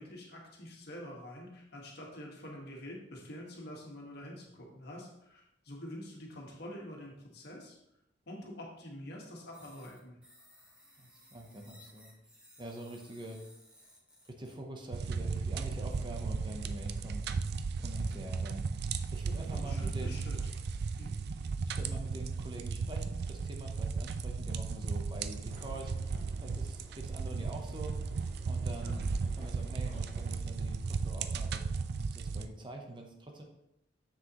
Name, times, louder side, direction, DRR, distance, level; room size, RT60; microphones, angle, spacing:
voice 1, 0.0-7.8 8.3-10.2 19.4-20.4 21.0-21.1 28.8-29.0, left 1 dB, 60° left, -1 dB, 1.7 m, -46 dB
sound 1, 9.5-14.5, left 1 dB, 5° right, 1.8 m, -59 dB
voice 2, 11.0-12.1 12.6-13.4 14.3-17.3 17.8-18.7 19.1-20.2 21.6-26.1 26.4-28.0 28.4-31.6 32.1-33.4, right 1 dB, 25° right, 2 dB, 0.9 m, -45 dB
sound 2, 14.9-32.5, right 4 dB, 60° right, 0.4 m, -35 dB
sound 3, 25.4-30.4, right 1 dB, 40° right, 1.6 m, -55 dB
7.2 x 6.5 x 3.1 m, 0.83 s
head